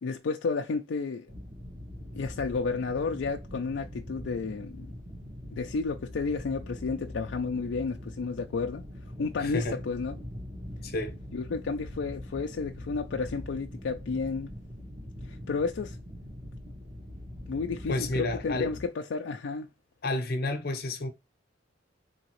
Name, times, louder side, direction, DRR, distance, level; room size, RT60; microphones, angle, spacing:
voice 1, 0.0-1.3 2.1-4.9 5.5-8.8 9.2-10.1 11.3-14.5 15.3-16.0 17.5-19.7, left 4 dB, 75° left, 0.4 m, -32 dB
sound 1, 1.3-18.9, left 1 dB, 40° right, 1.1 m, -42 dB
voice 2, 9.4-9.8 10.8-11.1 17.9-18.7 20.0-21.1, left 2 dB, 55° left, 0.8 m, -30 dB
3.8 x 2.8 x 3.0 m
head